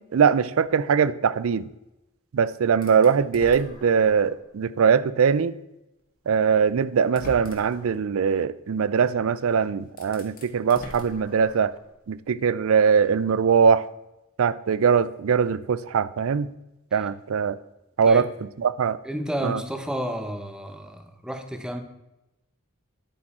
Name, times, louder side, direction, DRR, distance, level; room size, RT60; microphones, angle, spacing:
voice 1, 0.0-1.7 2.3-5.6 6.3-11.7 12.1-13.8 14.4-16.5 16.9-17.6 18.0-18.2 18.6-19.0 19.4-19.6, right 6 dB, 80° right, 0.4 m, -21 dB
sound 1, 2.8-4.4 5.0-5.1 6.3-6.4 7.0-8.0 9.4-9.5 9.9-11.9, left 1 dB, 45° left, 1.6 m, -42 dB
voice 2, 19.0-21.8, equal, 5° right, 0.8 m, -31 dB
9.7 x 8.8 x 4.2 m
head